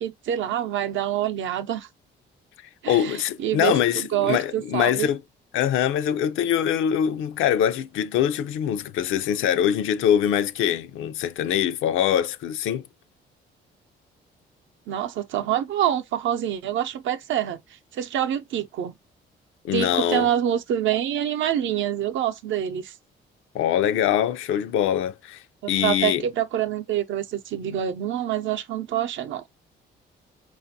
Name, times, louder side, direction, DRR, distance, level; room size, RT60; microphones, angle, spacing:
voice 1, 0.0-1.9 2.8-5.1 14.9-17.6 17.9-18.9 19.7-22.9 25.8-29.4, right 10 dB, 75° right, 0.6 m, -26 dB
voice 2, 2.9-5.2 5.5-12.8 19.6-20.3 23.5-25.4 25.7-26.2, left 10 dB, 85° left, 0.5 m, -23 dB
5.0 x 2.5 x 2.7 m
cardioid pair, 90°, 20 cm